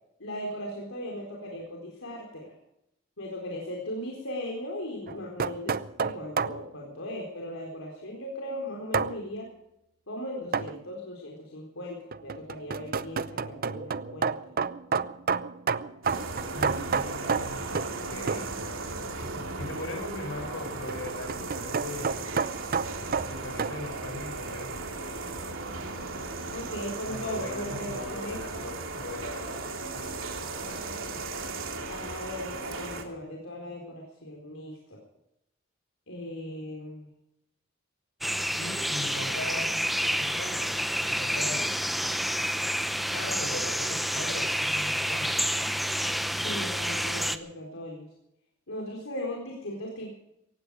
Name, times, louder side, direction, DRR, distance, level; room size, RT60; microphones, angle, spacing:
voice 1, 0.2-2.5 3.2-9.5 10.1-14.4 26.5-28.4 31.9-35.0 36.1-37.1 46.4-48.1 48.7-50.1, left 1 dB, 85° left, -1 dB, 4.1 m, -38 dB
sound 1, 5.1-6.6 8.9-9.2 10.5-10.8 12.1-18.0 18.3-18.5 20.7-23.8, right 5 dB, 45° right, 0.6 m, -30 dB
sound 2, 16.0-33.0, right 3 dB, 75° right, 2.9 m, -36 dB
voice 2, 16.5-17.7 18.1-18.5 19.6-22.3 23.2-25.1 27.1-29.6 29.9-30.2 30.5-31.2 38.6-39.8 40.2-40.7 41.1-41.7 43.1-45.4, left 2 dB, 70° left, 3 dB, 7.0 m, -40 dB
sound 3, 38.2-47.4, equal, ahead, 0.8 m, -29 dB
18.0 x 15.5 x 4.9 m, 0.82 s
head